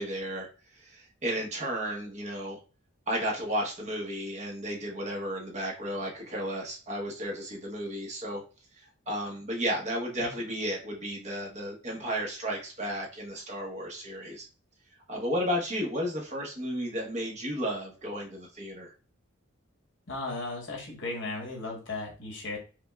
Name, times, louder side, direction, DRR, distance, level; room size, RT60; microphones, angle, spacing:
voice 1, 0.0-2.6 3.1-8.4 8.7-14.4 15.1-18.9, equal, 35° right, -1 dB, 0.9 m, -33 dB
voice 2, 20.1-22.6, left 2 dB, 65° left, 0 dB, 1.2 m, -36 dB
5.0 x 2.2 x 2.3 m, 0.35 s
head